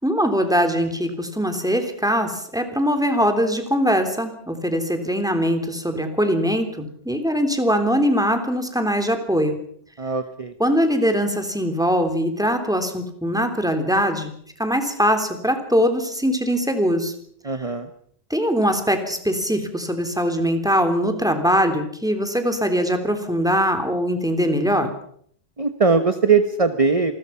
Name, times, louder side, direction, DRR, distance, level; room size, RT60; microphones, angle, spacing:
voice 1, 0.0-9.6 10.6-14.3 14.6-17.1 18.3-24.9, equal, 5° right, 6 dB, 3.4 m, -21 dB
voice 2, 10.0-10.5 17.4-17.9 25.6-27.1, right 5 dB, 35° right, 9 dB, 1.3 m, -20 dB
27.5 x 21.5 x 5.8 m, 0.63 s
omnidirectional pair, 1.0 m